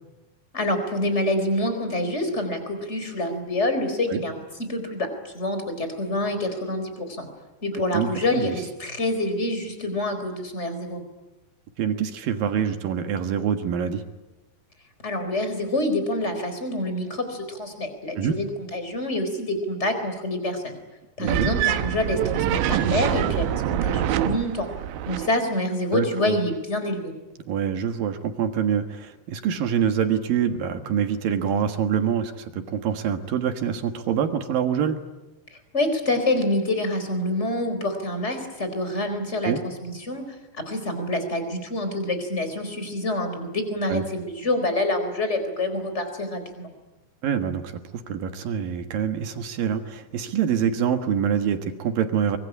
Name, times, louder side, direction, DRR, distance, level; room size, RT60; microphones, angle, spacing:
voice 1, 0.5-7.3 7.6-11.0 15.0-20.8 21.2-24.7 25.1-27.1 35.7-40.2 40.5-46.7, left 1 dB, 15° left, 8 dB, 4.0 m, -27 dB
voice 2, 7.9-8.6 11.8-14.0 18.2-18.3 21.2-21.5 25.9-26.4 27.5-35.0 39.4-39.6 43.9-44.0 47.2-47.8 48.1-52.4, right 8 dB, 65° right, 7 dB, 2.9 m, -25 dB
sound 1, 21.3-25.3, right 12 dB, 90° right, 3.3 m, -25 dB
24.5 x 23.5 x 10.0 m, 1.1 s
omnidirectional pair, 5.0 m